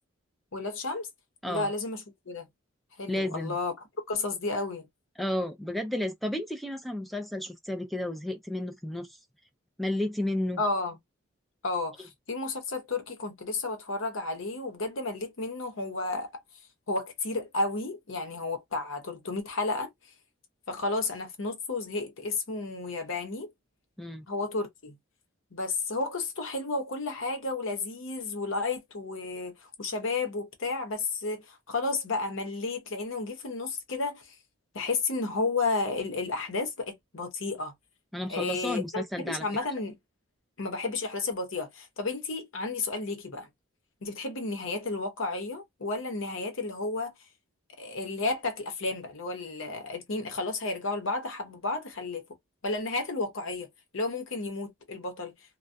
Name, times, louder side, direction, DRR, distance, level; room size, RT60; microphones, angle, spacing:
voice 1, 0.5-1.1 1.5-2.4 3.0-3.7 4.1-4.9 10.6-10.9 11.6-16.3 16.9-19.9 20.7-23.5 24.3-25.0 25.5-34.3 34.7-37.7 38.3-40.0 40.6-43.5 44.0-47.1 47.8-52.2 52.6-55.3, left 3 dB, 75° left, 0.8 m, -32 dB
voice 2, 3.1-3.6 5.2-9.2 9.8-10.6 24.0-24.3 38.1-39.4, left 1 dB, ahead, 0.4 m, -32 dB
2.3 x 2.2 x 2.5 m
head